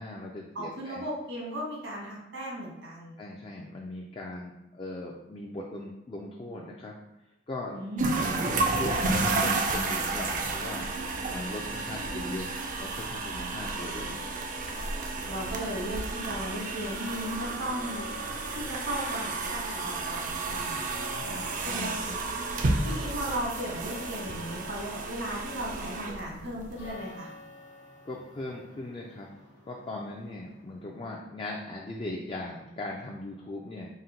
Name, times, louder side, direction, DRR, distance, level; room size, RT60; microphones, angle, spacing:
voice 1, 0.0-1.0 3.2-7.0 7.5-7.8 8.5-10.9 11.3-14.2 21.1-22.2 28.0-29.4 29.6-33.9, left 2 dB, 30° left, -2 dB, 0.3 m, -39 dB
voice 2, 0.5-3.1 7.7-8.4 13.3-14.4 15.3-18.1 18.5-20.8 21.6-22.0 22.8-27.3, right 1 dB, 85° right, -4 dB, 1.5 m, -36 dB
sound 1, 8.0-26.9, right 3 dB, 45° right, 0.4 m, -32 dB
sound 2, 17.6-31.1, left 3 dB, 85° left, 0.9 m, -50 dB
4.1 x 2.2 x 3.7 m, 0.89 s
head